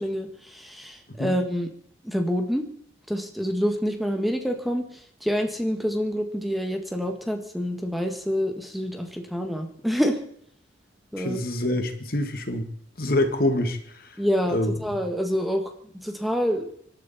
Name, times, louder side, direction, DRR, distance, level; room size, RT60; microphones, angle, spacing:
voice 1, 0.0-1.7 2.0-2.6 3.1-10.2 11.1-11.4 14.2-16.7, equal, ahead, 4 dB, 1.7 m, -27 dB
voice 2, 11.2-12.7 13.0-14.2 14.5-14.7, left 1 dB, 50° left, 7 dB, 1.9 m, -26 dB
26.0 x 12.0 x 4.3 m, 0.65 s
head